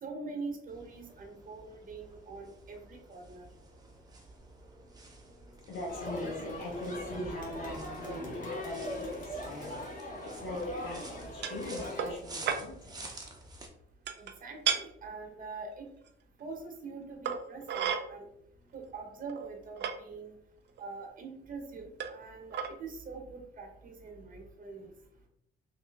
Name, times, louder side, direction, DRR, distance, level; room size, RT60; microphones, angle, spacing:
voice 1, 0.0-3.5 14.2-15.9 16.4-18.2 18.7-20.4 20.8-24.9, right 4 dB, 45° right, 2 dB, 0.9 m, -44 dB
sound 1, 0.7-13.7, right 2 dB, 20° right, 0.8 m, -49 dB
voice 2, 5.3-13.3, left 1 dB, 75° left, -4 dB, 1.0 m, -42 dB
Crowd, 5.9-12.1, left 1 dB, 40° left, 1.1 m, -40 dB
sound 2, 11.4-11.6 12.0-12.2 12.5-12.6 14.1-14.3 14.6-14.8 16.1-16.2 17.2-18.0 18.9-19.0 19.3-19.9 20.8-20.9 22.0-22.2 22.5-22.7, right 7 dB, 60° right, 0.5 m, -32 dB
3.3 x 2.6 x 3.4 m, 0.75 s
cardioid pair, 90°, 20 cm